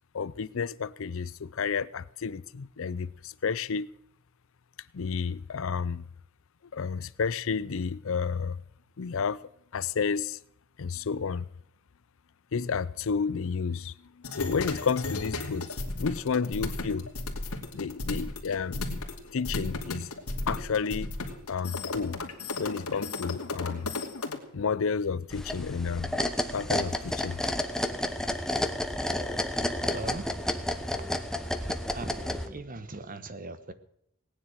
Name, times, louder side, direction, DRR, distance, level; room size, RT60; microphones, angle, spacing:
voice 1, 0.1-3.9 4.9-6.0 6.7-8.6 9.0-10.4 10.8-11.5 12.5-13.9 14.4-15.7 15.9-17.1 17.7-19.0 19.3-20.1 20.5-21.1 21.5-22.2 22.6-23.9 24.5-26.1 26.5-27.4, left 5 dB, 65° left, 0.5 m, -31 dB
sound 1, 14.2-24.4, left 2 dB, 90° left, 2.6 m, -34 dB
sound 2, 25.3-32.5, left 1 dB, ahead, 1.0 m, -31 dB
sound 3, 27.5-28.5 28.9-31.7 32.0-33.0, equal, 15° right, 1.6 m, -50 dB
voice 2, 29.8-30.3 31.3-31.4 31.9-33.7, right 2 dB, 40° right, 1.2 m, -40 dB
18.5 x 10.0 x 6.4 m
head